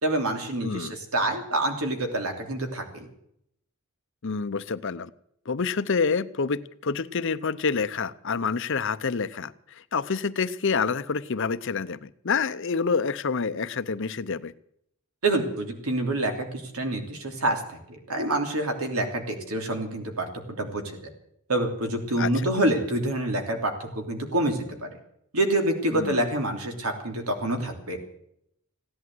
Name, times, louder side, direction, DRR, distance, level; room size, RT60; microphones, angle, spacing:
voice 1, 0.0-3.1 15.2-16.5 16.7-17.8 18.1-20.3 20.6-21.1 21.5-24.9 25.3-28.0, right 1 dB, 80° right, 4 dB, 3.1 m, -27 dB
voice 2, 0.6-1.0 4.2-5.1 5.5-14.5 22.2-22.5 25.9-26.2, left 5 dB, 60° left, 14 dB, 0.7 m, -28 dB
16.5 x 11.0 x 7.8 m, 0.72 s
head